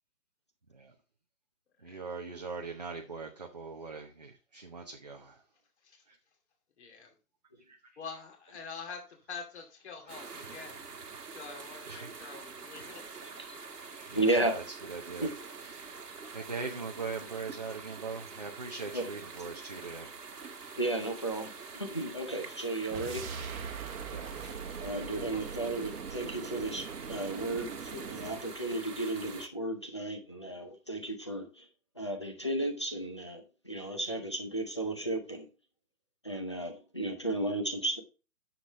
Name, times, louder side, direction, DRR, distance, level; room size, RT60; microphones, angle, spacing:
voice 1, 1.8-5.4 6.1-6.2 7.7-8.0 10.0-10.6 11.6-12.1 13.1-13.3 13.8-14.6 14.9-15.3 15.7-16.0 16.3-20.1 24.1-24.4, right 4 dB, 30° right, 2 dB, 0.6 m, -41 dB
voice 2, 6.8-7.1 8.0-9.0 9.3-10.8 11.3-13.0 25.3-25.4, left 5 dB, 45° left, 2 dB, 2.6 m, -45 dB
sound 1, 10.1-29.5, right 5 dB, 85° right, 1.6 m, -46 dB
voice 3, 14.1-14.5 15.2-15.3 18.9-19.0 20.8-23.2 24.4-24.5 24.8-31.7 32.0-35.5 36.2-38.0, right 2 dB, 20° left, 2 dB, 0.6 m, -34 dB
sound 2, 22.9-28.5, right 6 dB, 60° right, 1.1 m, -41 dB
9.7 x 7.3 x 2.9 m, 0.32 s
hypercardioid pair, 165°, 46 cm